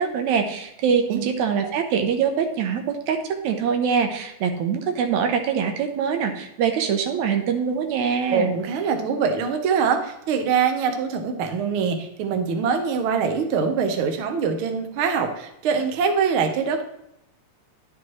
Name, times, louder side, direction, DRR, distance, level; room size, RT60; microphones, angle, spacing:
voice 1, 0.0-8.5, right 6 dB, 80° right, 5 dB, 2.2 m, -23 dB
voice 2, 8.3-16.8, right 6 dB, 65° right, 5 dB, 1.4 m, -23 dB
10.5 x 6.0 x 3.1 m, 0.80 s
omnidirectional pair, 3.3 m